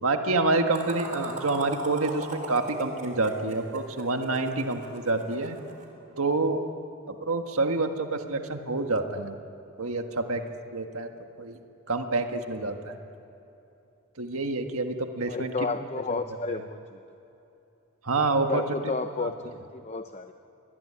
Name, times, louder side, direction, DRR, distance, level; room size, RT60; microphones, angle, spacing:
voice 1, 0.0-5.6 6.2-6.6 7.1-9.4 9.8-10.4 10.7-11.1 11.4-11.6 11.9-13.0 14.2-15.5 16.5-16.6 18.0-18.9 19.2-19.3, right 3 dB, 80° right, 5 dB, 1.6 m, -27 dB
sound 1, 0.7-5.8, right 2 dB, 35° right, 3.8 m, -39 dB
voice 2, 15.3-17.0 18.4-20.3, left 3 dB, 30° left, 8 dB, 0.6 m, -32 dB
26.5 x 21.0 x 10.0 m, 2.9 s
head